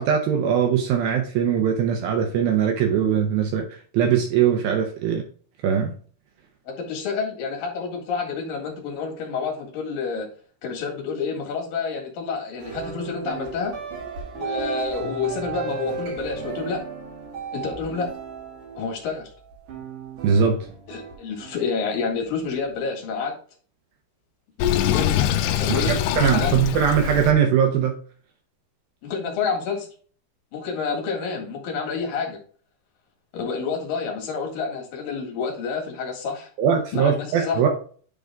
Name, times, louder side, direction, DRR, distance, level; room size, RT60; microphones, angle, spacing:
voice 1, 0.0-3.7 3.9-5.2 5.6-5.9 20.2-20.7 25.7-27.9 36.6-37.7, right 8 dB, 85° right, 3 dB, 2.0 m, -21 dB
voice 2, 6.7-10.3 10.6-13.7 14.3-16.8 17.5-18.1 18.7-19.3 20.9-23.3 24.8-25.1 25.5-26.6 29.0-29.9 30.5-32.4 33.3-36.5 36.9-37.6, left 5 dB, 55° left, 0 dB, 3.2 m, -29 dB
sound 1, 12.6-22.0, right 6 dB, 60° right, 4.5 m, -35 dB
Sink (filling or washing), 24.6-27.3, left 11 dB, 85° left, 2.4 m, -23 dB
11.0 x 3.8 x 3.5 m, 0.43 s
omnidirectional pair, 5.4 m